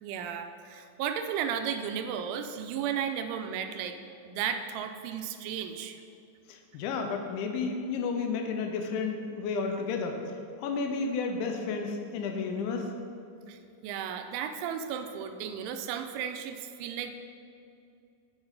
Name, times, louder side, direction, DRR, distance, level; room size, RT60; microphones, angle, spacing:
voice 1, 0.0-4.0 4.3-6.0 13.5-17.1, right 8 dB, 85° right, 7 dB, 2.9 m, -34 dB
voice 2, 6.5-10.3 10.6-12.9, left 4 dB, 85° left, 4 dB, 2.9 m, -32 dB
9.7 x 6.2 x 3.9 m, 2.6 s
omnidirectional pair, 5.4 m